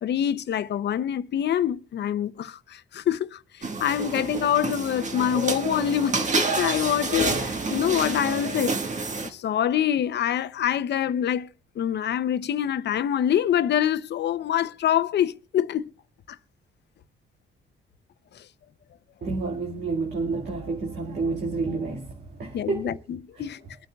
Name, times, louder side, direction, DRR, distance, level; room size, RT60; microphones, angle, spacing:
voice 1, 0.0-3.4 3.8-8.8 9.2-11.5 11.8-15.9 22.5-23.6, left 10 dB, 60° left, 0.6 m, -25 dB
sound 1, 3.6-9.3, right 3 dB, 35° right, 1.5 m, -28 dB
voice 2, 19.2-23.0 23.4-23.5, right 3 dB, 55° right, 1.9 m, -29 dB
24.0 x 9.1 x 2.3 m
cardioid pair, 90°, 20 cm